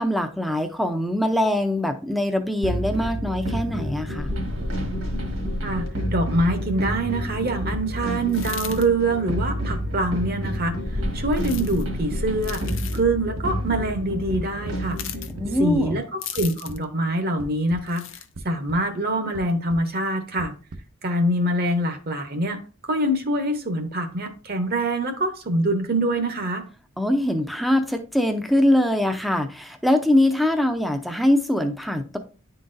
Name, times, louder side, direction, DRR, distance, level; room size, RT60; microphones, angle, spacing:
voice 1, 0.0-4.3 15.3-16.0 27.0-32.2, left 1 dB, ahead, 5 dB, 0.5 m, -22 dB
sound 1, 2.6-15.9, equal, 70° right, 1.6 m, -29 dB
voice 2, 5.6-10.8 11.1-12.6 12.9-15.0 15.6-18.0 18.4-20.5 21.0-26.6, right 1 dB, 45° right, 7 dB, 0.8 m, -24 dB
sound 2, 7.7-7.8 8.4-8.8 9.4-9.8 10.2-10.8 11.4-11.8 12.4-12.8 13.4-13.8 14.3-14.8 15.4-15.8 16.4-16.8 17.4-17.8 18.3-18.8 19.3-19.8 20.4-20.8, right 2 dB, 90° right, 0.9 m, -36 dB
sound 3, 8.3-8.9 11.3-11.8 12.4-13.0 14.9-15.3 16.2-16.8 17.9-18.3, left 11 dB, 60° left, 0.6 m, -36 dB
10.0 x 3.9 x 2.6 m, 0.36 s
head